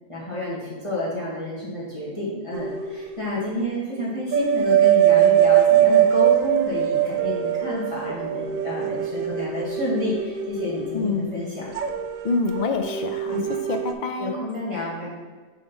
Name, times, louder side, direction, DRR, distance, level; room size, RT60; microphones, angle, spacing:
voice 1, 0.1-11.7 13.3-13.5 14.2-15.2, left 1 dB, 25° left, -8 dB, 1.6 m, -29 dB
sound 1, 2.5-3.7 4.0-13.9, right 11 dB, 75° right, 0.9 m, -22 dB
voice 2, 10.9-11.3 12.2-13.4 13.7-14.4, left 4 dB, 80° left, 6 dB, 0.4 m, -26 dB
4.8 x 4.3 x 5.7 m, 1.4 s
omnidirectional pair, 1.4 m